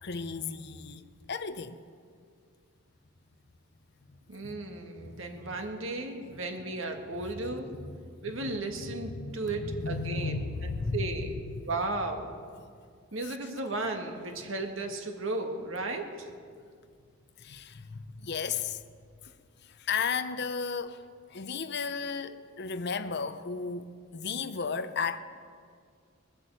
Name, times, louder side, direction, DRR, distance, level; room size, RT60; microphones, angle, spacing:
voice 1, 0.0-1.8 4.4-4.5 4.9-5.5 8.4-8.5 9.2-11.0 13.3-13.4 17.4-18.8 19.8-21.0 21.3-25.2, left 5 dB, 55° left, 0.7 m, -34 dB
voice 2, 4.3-7.7 8.2-11.4 11.7-12.3 13.1-16.3, right 2 dB, 70° right, 1.8 m, -35 dB
21.0 x 8.2 x 7.8 m
head